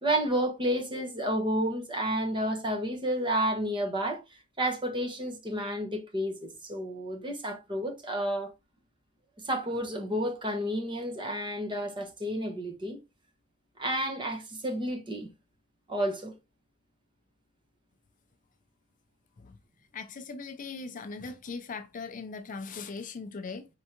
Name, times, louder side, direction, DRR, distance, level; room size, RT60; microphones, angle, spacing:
voice 1, 0.0-4.2 4.6-8.5 9.4-13.0 13.8-15.3 15.9-16.3, right 1 dB, 25° right, 0.9 m, -31 dB
voice 2, 19.9-23.7, left 4 dB, 40° left, 0.5 m, -39 dB
4.6 x 3.5 x 2.8 m
head